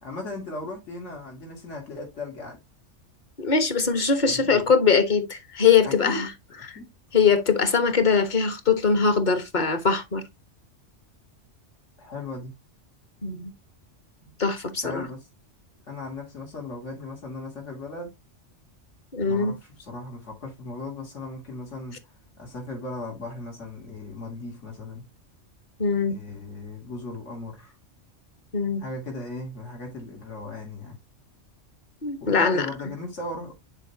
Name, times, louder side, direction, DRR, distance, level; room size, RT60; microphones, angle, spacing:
voice 1, 0.0-2.6 4.2-4.6 5.8-6.2 6.7-6.9 12.0-12.5 14.2-14.3 14.7-15.3 15.9-18.1 19.2-22.0 22.4-25.0 26.1-27.7 28.8-31.0 32.2-33.5, left 2 dB, 70° left, 2.8 m, -37 dB
voice 2, 3.4-6.3 6.7-6.8 7.1-10.2 13.2-13.5 14.4-15.1 19.1-19.5 25.8-26.2 28.5-28.8 32.0-32.7, left 5 dB, 40° left, 1.3 m, -22 dB
9.8 x 4.6 x 2.8 m
omnidirectional pair, 1.3 m